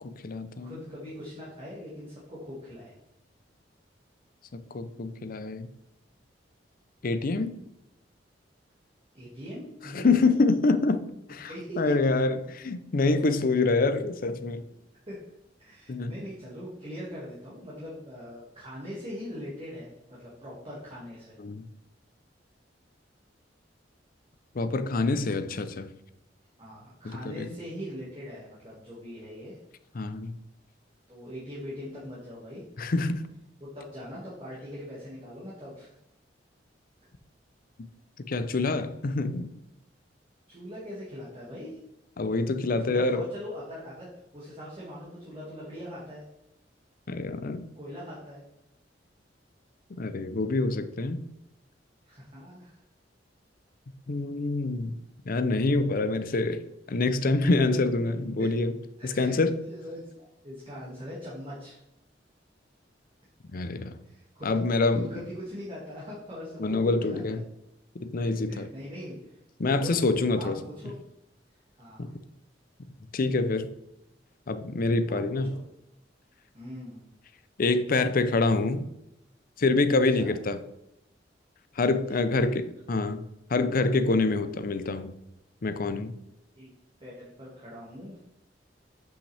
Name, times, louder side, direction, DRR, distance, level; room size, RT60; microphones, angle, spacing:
voice 1, 0.0-0.8 4.5-5.7 7.0-7.5 9.9-11.5 11.8-14.6 15.9-16.1 21.4-21.6 24.5-25.9 27.0-27.5 29.9-30.3 32.8-33.2 38.3-39.5 42.2-43.2 47.1-47.7 49.9-51.2 54.1-55.0 55.3-56.6 56.9-58.8 59.0-59.6 63.5-64.0 64.4-65.1 66.6-67.4 68.0-68.7 69.6-70.6 72.0-72.1 73.1-73.7 74.5-75.5 77.6-78.8 79.6-80.6 81.8-83.2 83.5-85.1 85.6-86.1, left 3 dB, 50° left, 0.6 m, -26 dB
voice 2, 0.6-3.0 9.1-10.3 11.5-11.9 14.6-14.8 15.1-15.2 15.6-21.4 26.6-29.6 31.1-32.6 33.6-35.9 38.6-38.7 40.5-41.8 42.8-46.2 47.8-48.4 52.0-52.8 57.5-58.1 58.4-58.5 59.0-59.4 59.7-61.8 64.0-64.5 64.9-67.5 68.5-71.1 71.8-72.1 75.1-75.2 75.5-75.6 76.5-77.0 80.2-80.4 82.1-82.5 86.5-86.7 87.0-88.2, equal, 30° right, 2.0 m, -41 dB
7.9 x 5.7 x 3.4 m
head